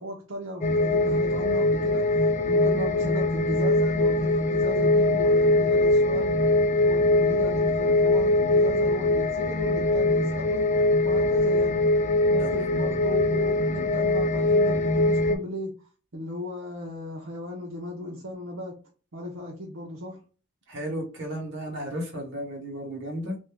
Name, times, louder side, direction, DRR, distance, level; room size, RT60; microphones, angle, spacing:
voice 1, 0.0-6.4 6.8-11.9 12.3-18.8 19.1-20.2, equal, 80° right, 0.7 m, -36 dB
sound 1, 0.6-15.4, left 2 dB, 35° left, 0.3 m, -22 dB
voice 2, 20.7-23.4, equal, 60° right, 1.3 m, -34 dB
2.6 x 2.2 x 3.5 m
head